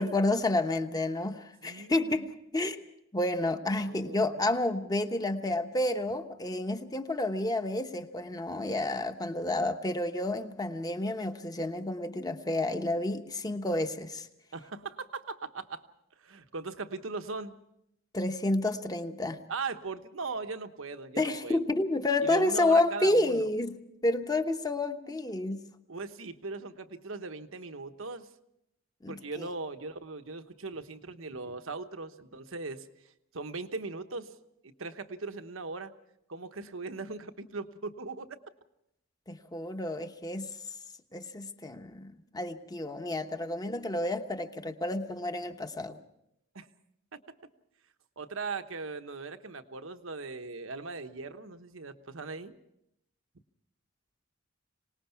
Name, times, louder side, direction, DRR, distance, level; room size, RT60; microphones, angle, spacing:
voice 1, 0.0-2.8 3.1-14.3 18.1-19.4 21.2-23.7 24.0-25.6 29.0-29.5 39.3-40.5 41.1-46.0, left 2 dB, 20° left, 8 dB, 1.0 m, -30 dB
voice 2, 1.6-2.2 3.9-4.5 14.5-15.8 16.2-17.5 19.5-21.6 22.2-23.5 25.9-28.3 29.1-32.9 33.3-34.3 34.6-35.9 36.3-38.3 46.5-46.7 47.1-47.2 48.2-52.6, right 4 dB, 85° right, 9 dB, 1.1 m, -39 dB
25.5 x 19.0 x 5.8 m, 0.81 s
head